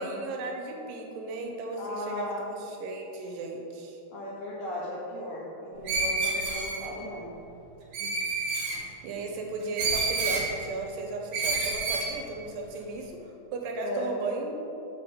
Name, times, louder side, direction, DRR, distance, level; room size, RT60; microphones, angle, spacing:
voice 1, 0.0-4.0 9.0-14.6, right 2 dB, 85° right, 1 dB, 2.4 m, -36 dB
voice 2, 1.8-2.6 4.1-7.3 8.0-8.1 13.8-14.1, left 1 dB, 70° left, -5 dB, 1.8 m, -36 dB
Screech, 5.9-6.9 7.9-8.8 9.8-10.5 11.3-12.1, right 3 dB, 70° right, 2.4 m, -28 dB
6.6 x 6.1 x 3.7 m, 3.0 s
omnidirectional pair, 4.0 m